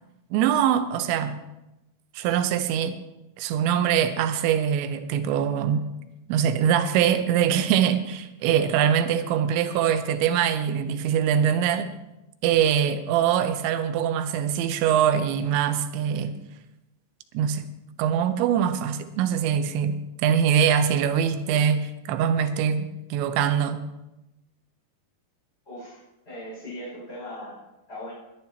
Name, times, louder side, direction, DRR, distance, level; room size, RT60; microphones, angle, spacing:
voice 1, 0.3-1.4 2.1-3.0 3.4-5.9 6.3-11.9 12.4-16.4 17.3-17.7 18.0-23.8, right 8 dB, 90° right, 3.0 m, -23 dB
voice 2, 25.6-27.6 27.9-28.1, left 1 dB, 15° left, 6.0 m, -39 dB
21.0 x 11.0 x 2.9 m
omnidirectional pair, 5.2 m